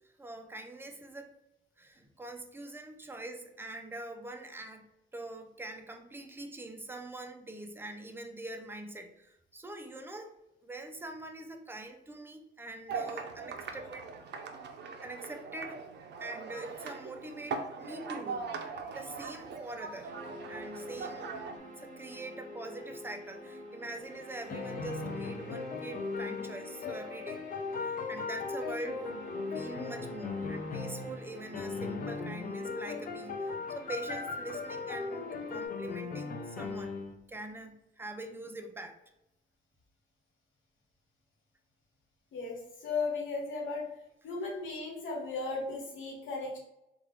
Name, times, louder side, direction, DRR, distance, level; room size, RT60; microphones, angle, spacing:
voice 1, 0.2-1.4 1.8-4.9 5.1-10.3 10.6-14.1 15.0-15.9 16.2-18.4 18.9-20.1 20.5-21.3 21.8-27.4 27.7-37.0 37.3-39.0, right 2 dB, 10° right, 5 dB, 0.4 m, -44 dB
sound 1, 12.9-21.6, right 5 dB, 60° right, 0.5 m, -41 dB
sound 2, 20.0-35.7, equal, 45° right, 1.3 m, -47 dB
sound 3, 24.0-31.3 31.5-37.1, left 4 dB, 45° left, 0.5 m, -38 dB
voice 2, 42.3-43.8 44.2-46.6, left 3 dB, 75° left, -1 dB, 1.2 m, -36 dB
3.4 x 2.4 x 3.1 m, 0.88 s
cardioid pair, 90°, 20 cm